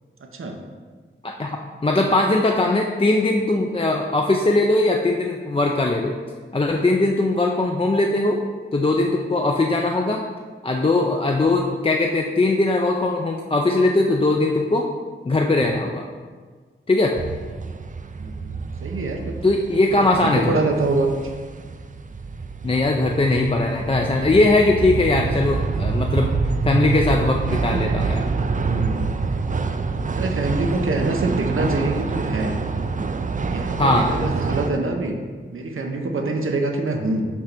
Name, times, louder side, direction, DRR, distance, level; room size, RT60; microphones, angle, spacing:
voice 1, 1.2-6.2 6.5-8.4 8.7-10.2 10.6-14.9 15.3-16.0 16.9-17.2 19.4-20.6 22.6-26.4 26.6-28.2 33.8-34.1, left 2 dB, 25° left, 1 dB, 0.4 m, -20 dB
sound 1, 17.1-34.7, right 4 dB, 40° right, 0.4 m, -26 dB
voice 2, 18.2-19.5 19.9-21.1 28.6-29.1 30.1-32.6 33.5-35.2 35.5-37.3, right 2 dB, 85° right, 3 dB, 0.7 m, -25 dB
6.0 x 3.3 x 5.8 m, 1.5 s
wide cardioid pair, 70°, 21 cm